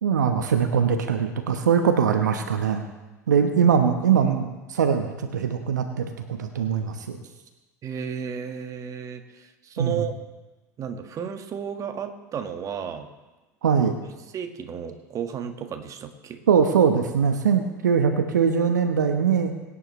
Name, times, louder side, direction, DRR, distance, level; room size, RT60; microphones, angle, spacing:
voice 1, 0.0-2.8 3.3-7.2 9.8-10.0 13.6-14.0 16.5-19.5, right 7 dB, 75° right, 6 dB, 1.2 m, -22 dB
voice 2, 7.8-10.2 10.8-13.1 13.7-13.9 14.3-16.4, right 7 dB, 35° right, 5 dB, 1.6 m, -33 dB
23.0 x 9.9 x 3.3 m, 1.1 s
figure-of-eight pair, 75°, 10 cm